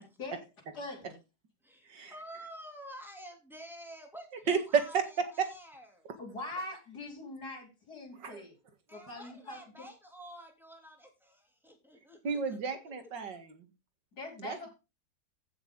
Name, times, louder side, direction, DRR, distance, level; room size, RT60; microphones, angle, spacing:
voice 1, 0.7-1.2 6.2-8.5 8.9-9.6 14.1-14.7, left 2 dB, 65° left, 0 dB, 5.1 m, -42 dB
voice 2, 1.6-6.1 8.9-12.9, equal, ahead, 2 dB, 3.2 m, -50 dB
voice 3, 4.5-5.0 8.2-8.4 12.2-13.7 14.4-14.7, right 5 dB, 85° right, 8 dB, 2.6 m, -32 dB
15.0 x 6.7 x 4.0 m, 0.27 s
omnidirectional pair, 1.9 m